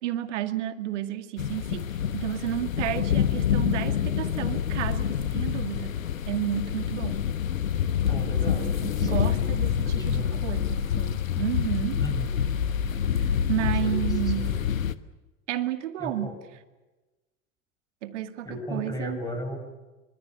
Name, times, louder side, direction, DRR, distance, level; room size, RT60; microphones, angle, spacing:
voice 1, 0.0-7.3 8.5-12.0 13.1-14.6 15.5-16.4 18.0-19.2, right 12 dB, 60° right, 10 dB, 2.1 m, -32 dB
sound 1, 1.4-14.9, left 9 dB, 70° left, 1.3 m, -27 dB
voice 2, 8.1-8.7 9.0-10.4 12.0-12.4 13.5-14.7 16.0-16.4 18.4-19.6, left 1 dB, 10° left, 4 dB, 7.3 m, -36 dB
26.0 x 25.0 x 6.9 m, 1.1 s
figure-of-eight pair, 85°, 41 cm